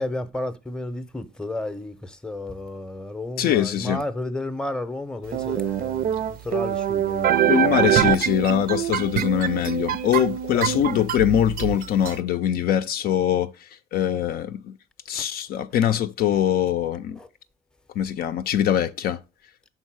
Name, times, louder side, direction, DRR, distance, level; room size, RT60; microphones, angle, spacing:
voice 1, 0.0-7.4 7.7-7.9 10.5-10.8 15.1-15.2 17.1-17.3, left 1 dB, 5° left, 0.7 m, -32 dB
voice 2, 3.4-4.0 7.5-13.5 13.9-14.7 15.1-17.2 18.0-19.2, left 10 dB, 65° left, 0.5 m, -23 dB
sound 1, 5.3-12.2, right 10 dB, 60° right, 0.5 m, -24 dB
5.5 x 4.0 x 6.0 m
cardioid pair, 110°, 17 cm